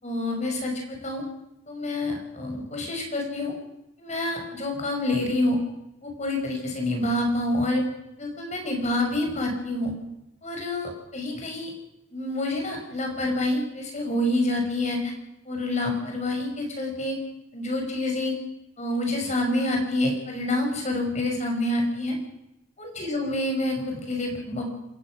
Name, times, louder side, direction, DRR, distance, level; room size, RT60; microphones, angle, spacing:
voice 1, 0.0-1.2 1.7-3.5 4.0-5.6 6.0-7.8 8.2-9.9 10.4-11.7 12.1-15.1 15.5-17.2 17.5-18.3 18.8-22.2 22.8-24.6, left 1 dB, 35° left, 2 dB, 5.9 m, -27 dB
27.5 x 15.5 x 6.3 m, 0.88 s
head